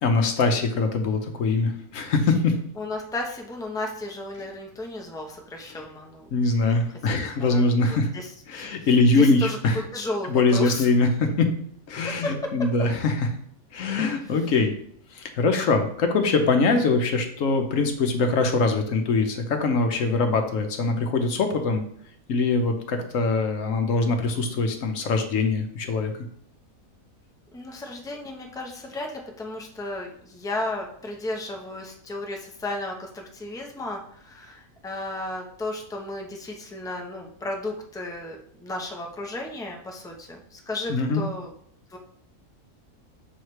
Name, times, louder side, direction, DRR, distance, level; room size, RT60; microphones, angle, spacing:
voice 1, 0.0-2.6 5.7-5.8 6.3-8.1 8.5-9.8 10.3-11.5 11.9-13.3 13.7-14.7 15.1-21.8 22.3-26.1 40.9-41.2, left 3 dB, 70° left, 5 dB, 1.1 m, -23 dB
voice 2, 2.8-6.3 7.0-8.7 9.1-9.6 9.9-10.9 12.2-12.5 27.5-41.5 41.9-42.0, left 2 dB, 5° left, 1 dB, 0.5 m, -34 dB
6.4 x 3.1 x 4.7 m, 0.65 s
omnidirectional pair, 1.5 m